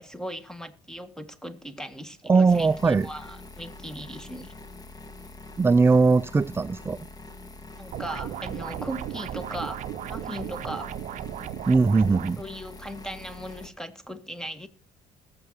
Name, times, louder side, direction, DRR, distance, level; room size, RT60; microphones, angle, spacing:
voice 1, 0.0-4.5 7.8-11.0 12.4-14.7, equal, 5° left, 1.6 m, -38 dB
voice 2, 2.3-3.1 5.6-7.0 11.7-12.4, right 4 dB, 15° right, 0.4 m, -20 dB
sound 1, 2.5-13.7, left 3 dB, 25° left, 1.9 m, -45 dB
sound 2, 7.9-12.3, right 12 dB, 60° right, 0.7 m, -35 dB
20.5 x 7.6 x 2.8 m
hypercardioid pair, 65°, 15 cm